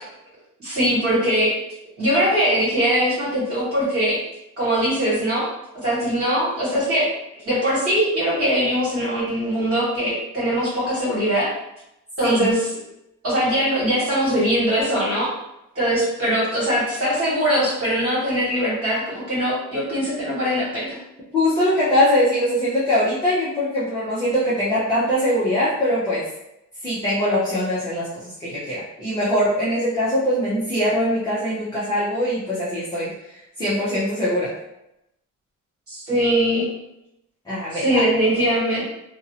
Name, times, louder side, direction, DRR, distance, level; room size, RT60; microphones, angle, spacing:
voice 1, 0.6-1.6 2.0-4.2 4.6-5.5 5.8-7.1 7.3-11.5 12.2-12.7 13.2-15.3 15.7-20.9 35.9-36.7 37.7-38.8, equal, 45° right, -9 dB, 1.3 m, -21 dB
voice 2, 21.3-26.3 26.8-33.1 33.6-34.5 37.5-38.0, left 1 dB, 15° left, -10 dB, 0.5 m, -22 dB
2.5 x 2.0 x 2.7 m, 0.86 s
wide cardioid pair, 165°, 32 cm